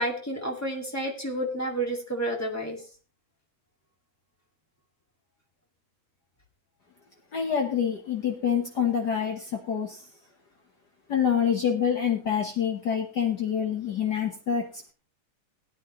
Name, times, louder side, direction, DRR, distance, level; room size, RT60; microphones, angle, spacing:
voice 1, 0.0-2.8, right 1 dB, 10° left, 1 dB, 1.1 m, -30 dB
voice 2, 7.3-10.0 11.1-14.9, left 8 dB, 80° left, 1 dB, 0.9 m, -26 dB
18.0 x 9.7 x 3.1 m, 0.37 s
omnidirectional pair, 3.6 m